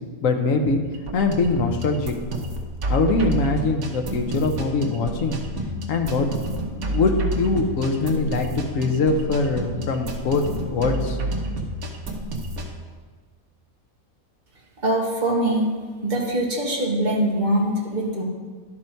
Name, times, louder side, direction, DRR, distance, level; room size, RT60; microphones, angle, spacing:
voice 1, 0.2-0.8 1.1-2.1 2.8-5.4 5.9-6.3 6.9-11.2, left 3 dB, 65° left, 4 dB, 1.3 m, -22 dB
sound 1, 0.9-12.7, right 1 dB, 75° right, 1.5 m, -30 dB
voice 2, 14.8-15.7 16.0-18.2, right 1 dB, 30° right, -2 dB, 1.7 m, -23 dB
11.5 x 6.2 x 4.5 m, 1.5 s
omnidirectional pair, 1.5 m